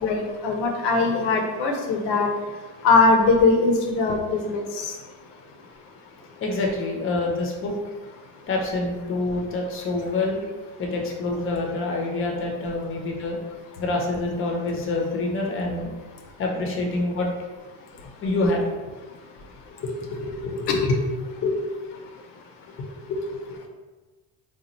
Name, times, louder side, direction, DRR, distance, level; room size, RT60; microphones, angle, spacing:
voice 1, 0.0-2.3 2.8-4.8, left 3 dB, 75° left, 3 dB, 0.7 m, -21 dB
voice 2, 6.4-7.7 8.5-10.4 10.8-13.4 13.8-15.9 16.4-17.3 18.2-18.8 19.8-21.0 21.4-21.6 22.8-23.6, left 2 dB, 30° left, 0 dB, 0.7 m, -26 dB
2.9 x 2.3 x 4.1 m, 1.3 s
cardioid pair, 130°, 42 cm